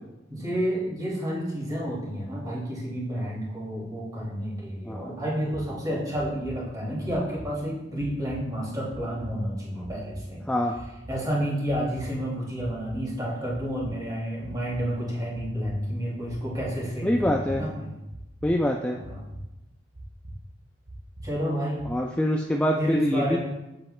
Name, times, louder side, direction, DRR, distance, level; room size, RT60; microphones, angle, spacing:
voice 1, 0.3-10.4 11.1-17.9 18.9-19.2 21.2-21.8 22.8-23.4, equal, 20° right, -6 dB, 2.5 m, -30 dB
sound 1, 5.5-5.6 6.1-6.6 7.1-7.5 8.0-8.4 8.9-9.3 9.8-10.2 10.7-11.2 11.7-12.1 12.6-13.0 13.5-13.9 14.4-14.8 15.3-15.8 16.3-16.7 17.2-17.6 18.1-18.5 19.0-19.4 19.9-20.4 20.9-21.3 21.8-21.9, right 1 dB, 55° right, 1.1 m, -41 dB
voice 2, 17.0-17.6 18.4-19.0 21.9-23.4, equal, 5° left, 0 dB, 0.3 m, -24 dB
7.7 x 7.4 x 2.2 m, 0.96 s
head